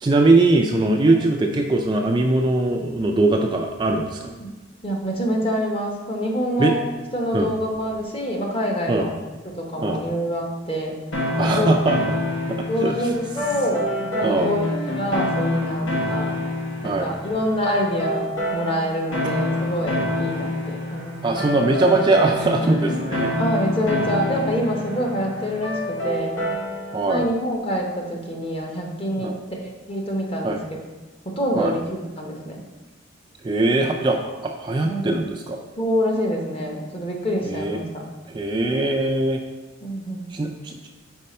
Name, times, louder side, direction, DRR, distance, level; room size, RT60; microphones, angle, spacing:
voice 1, 0.0-4.3 6.6-6.7 7.3-7.5 8.9-9.1 9.8-10.0 11.4-12.0 12.5-13.1 14.2-14.5 16.8-17.1 21.2-23.3 26.9-27.3 29.2-29.4 30.4-30.6 31.6-31.7 33.4-35.6 37.4-37.8 38.3-39.4 40.3-40.9, right 2 dB, 25° right, 1 dB, 0.3 m, -21 dB
voice 2, 4.8-6.8 7.1-9.1 9.5-11.0 11.4-11.7 12.7-16.4 16.8-21.3 22.9-23.1 23.4-26.4 27.0-30.8 31.2-32.6 34.8-35.2 35.8-38.0 39.8-40.3, equal, 30° left, 0 dB, 0.9 m, -26 dB
sound 1, 11.1-27.0, left 1 dB, 90° left, 1.2 m, -27 dB
5.4 x 4.2 x 4.2 m, 1.2 s
head